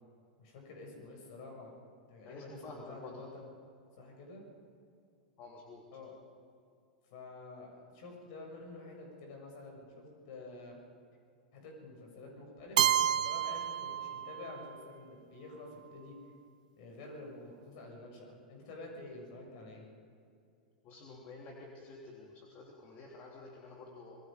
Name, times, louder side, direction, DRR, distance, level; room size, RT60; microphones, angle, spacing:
voice 1, 0.4-1.8 2.1-3.5 4.0-4.4 5.9-6.1 7.1-10.8 11.5-16.2 16.8-19.8, left 2 dB, 55° left, 1 dB, 7.1 m, -49 dB
voice 2, 2.2-3.2 5.4-5.8 20.8-24.2, left 3 dB, 40° left, -1 dB, 3.4 m, -50 dB
Keyboard (musical), 12.8-14.7, right 10 dB, 70° right, 0.4 m, -30 dB
26.0 x 21.0 x 5.2 m, 2.4 s
hypercardioid pair, 95°, 4 cm